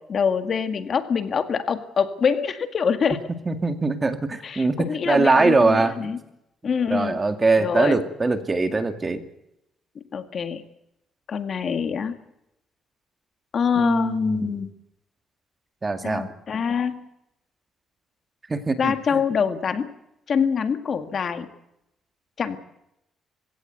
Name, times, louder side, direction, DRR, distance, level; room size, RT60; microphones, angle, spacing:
voice 1, 0.1-3.2 4.4-6.2 6.6-7.2 7.6-8.0 10.1-10.6 11.3-12.2 13.5-14.7 16.0-17.0 18.8-19.9 20.3-21.5 22.4-22.6, left 6 dB, 50° left, 9 dB, 1.9 m, -25 dB
voice 2, 3.5-6.1 6.9-9.2 13.8-14.6 15.8-16.3 18.5-19.2, right 3 dB, 25° right, 8 dB, 2.2 m, -22 dB
20.5 x 17.0 x 9.4 m, 0.84 s
cardioid pair, 90°, 0 cm